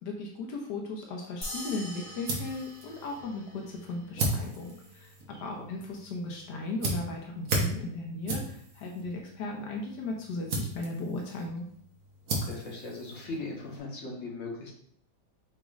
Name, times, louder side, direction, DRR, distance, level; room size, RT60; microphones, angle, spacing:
voice 1, 0.0-11.7, left 2 dB, 80° left, 0 dB, 1.3 m, -37 dB
sound 1, 1.4-4.2, left 1 dB, 25° left, 0.8 m, -43 dB
sound 2, 1.7-13.8, right 2 dB, 65° right, 1.4 m, -37 dB
voice 2, 12.3-14.7, left 2 dB, 55° left, -2 dB, 1.4 m, -39 dB
4.9 x 4.1 x 2.4 m, 0.64 s
omnidirectional pair, 1.8 m